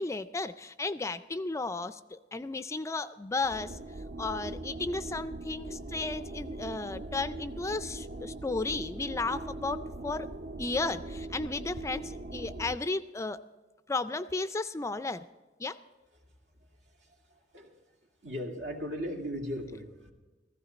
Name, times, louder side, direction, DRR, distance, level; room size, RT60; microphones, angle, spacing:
voice 1, 0.0-3.8 4.2-10.3 10.6-13.4 13.9-15.2 15.6-15.8, left 3 dB, 15° left, 12 dB, 0.3 m, -34 dB
sound 1, 3.4-12.8, right 2 dB, 55° right, 0.5 m, -41 dB
voice 2, 17.0-17.8 18.2-20.1, equal, 80° right, 1 dB, 2.3 m, -38 dB
16.0 x 15.0 x 4.1 m, 1.2 s
head